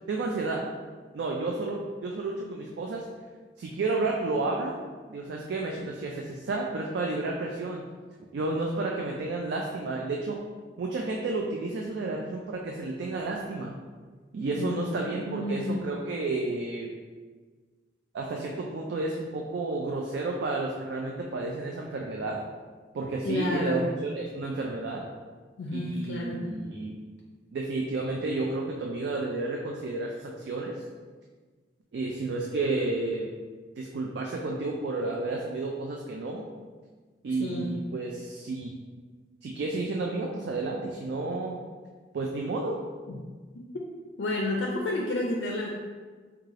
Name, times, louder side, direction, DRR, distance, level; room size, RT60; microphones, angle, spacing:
voice 1, 0.1-0.6 1.1-3.1 3.6-4.8 5.1-7.8 8.3-10.4 10.8-13.7 14.3-16.9 18.1-22.4 22.9-25.0 25.7-27.0 27.5-30.8 31.9-33.3 33.8-36.4 37.2-38.7 39.4-41.6 42.1-42.8, right 3 dB, 60° right, 0 dB, 0.3 m, -31 dB
voice 2, 14.6-15.9 23.2-23.9 25.6-26.5 37.3-37.7 43.1-43.2 43.5-43.6 44.2-45.7, left 1 dB, 70° left, -2 dB, 0.4 m, -31 dB
3.5 x 2.3 x 3.2 m, 1.5 s
head